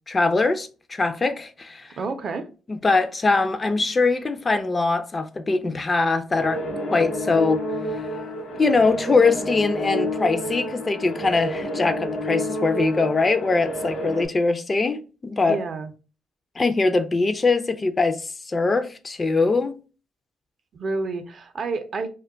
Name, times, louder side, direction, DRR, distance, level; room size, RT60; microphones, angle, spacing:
voice 1, 0.1-2.0 2.7-6.6 6.9-7.6 8.6-15.6 16.6-19.7, left 3 dB, 30° left, 0.3 m, -22 dB
voice 2, 2.0-2.5 15.5-15.9 20.7-22.1, right 3 dB, 50° right, 0.4 m, -29 dB
sound 1, 6.3-14.3, left 1 dB, 70° left, 0.9 m, -29 dB
2.2 x 2.1 x 3.6 m
cardioid pair, 90°, 0 cm